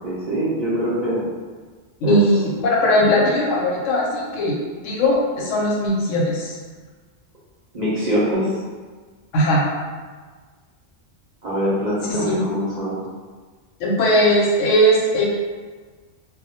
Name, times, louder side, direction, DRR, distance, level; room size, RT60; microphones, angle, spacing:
voice 1, 0.0-1.2 2.0-2.2 7.7-8.4 11.4-13.0, equal, 45° right, -9 dB, 0.6 m, -23 dB
voice 2, 2.0-4.5 4.8-6.6 9.3-9.6 12.0-12.5 13.8-15.2, equal, 85° left, -3 dB, 1.0 m, -19 dB
2.2 x 2.0 x 2.8 m, 1.5 s
omnidirectional pair, 1.3 m